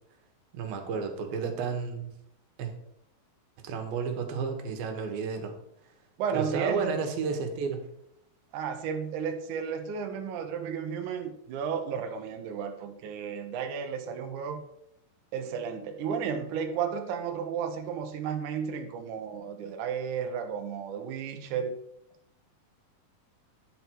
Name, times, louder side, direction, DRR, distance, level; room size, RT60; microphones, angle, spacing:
voice 1, 0.5-2.1 2.6-2.7 3.6-5.6 6.3-7.8, right 5 dB, 90° right, 5 dB, 3.0 m, -32 dB
voice 2, 6.2-7.0 8.5-14.6 15.3-21.8, right 7 dB, 70° right, 5 dB, 2.2 m, -33 dB
9.9 x 6.8 x 4.5 m, 0.77 s
omnidirectional pair, 4.1 m